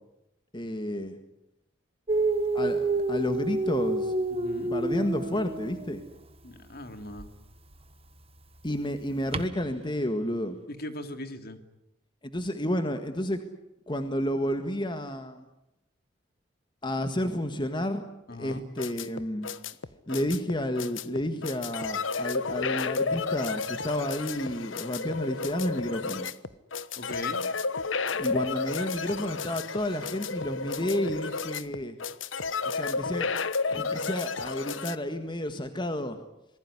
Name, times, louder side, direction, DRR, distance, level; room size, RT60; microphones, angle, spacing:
voice 1, 0.5-1.2 2.5-4.1 4.6-6.0 8.6-10.6 12.2-13.4 13.9-15.5 16.8-18.0 18.4-19.5 20.1-26.3 28.2-32.0 32.6-33.4 33.6-36.2, left 1 dB, 25° left, 8 dB, 1.7 m, -31 dB
Dog, 2.1-6.1 7.1-7.3 9.3-9.5, right 2 dB, 30° right, 1.3 m, -28 dB
voice 2, 4.3-4.7 6.4-7.3 10.7-11.6 18.3-18.6 27.0-27.4, left 1 dB, 55° left, 8 dB, 2.6 m, -39 dB
sound 1, 18.5-35.0, left 4 dB, 85° left, 1.1 m, -32 dB
27.0 x 20.5 x 9.9 m, 0.87 s
head